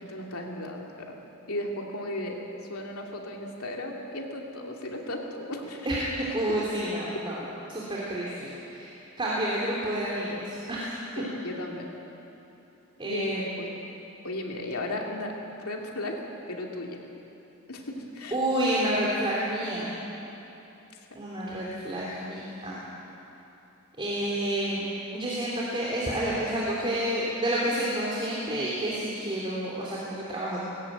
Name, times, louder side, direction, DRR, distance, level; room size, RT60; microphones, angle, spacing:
voice 1, 0.0-1.2 1.5-2.4 2.7-5.9 11.1-11.9 13.0-13.7 14.2-15.3 15.6-16.2 16.5-17.0 17.7-18.4, left 1 dB, 80° left, 0 dB, 2.8 m, -35 dB
voice 2, 5.8-11.2 13.0-13.4 18.3-19.9 21.1-22.8 24.0-24.9 25.1-30.6, right 1 dB, 25° right, -6 dB, 3.1 m, -29 dB
19.5 x 16.0 x 9.3 m, 2.9 s
head